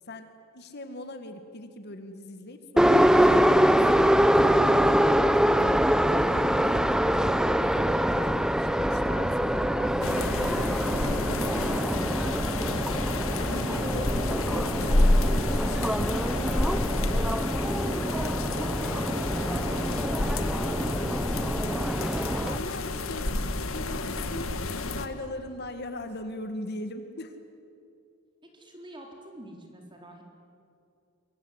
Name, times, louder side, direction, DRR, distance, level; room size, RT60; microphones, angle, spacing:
voice 1, 0.1-4.2 4.6-5.3 6.0-13.1 13.5-16.5 22.4-23.4 23.7-24.6 24.9-27.4, left 1 dB, 55° left, 8 dB, 1.9 m, -41 dB
Subway metro underground, 2.8-22.6, equal, 5° right, 0.5 m, -24 dB
sound 1, 10.0-25.1, left 2 dB, 85° left, 1.8 m, -29 dB
voice 2, 16.9-18.7 19.0-21.4 28.4-30.2, right 1 dB, 25° right, 2 dB, 4.4 m, -47 dB
25.0 x 22.0 x 9.7 m, 2.5 s
head